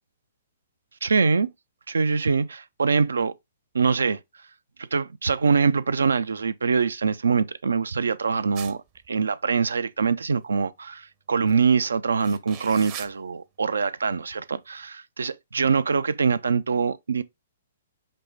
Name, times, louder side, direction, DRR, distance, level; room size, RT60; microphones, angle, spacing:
voice 1, 1.0-1.5 1.9-3.3 3.7-4.2 4.9-8.8 9.1-17.2, right 5 dB, 75° right, 0.4 m, -24 dB
sound 1, 8.5-9.1 11.5-11.6 12.1-13.1, right 10 dB, 35° right, 0.7 m, -39 dB
5.3 x 2.0 x 3.9 m
figure-of-eight pair, 120°, 0 cm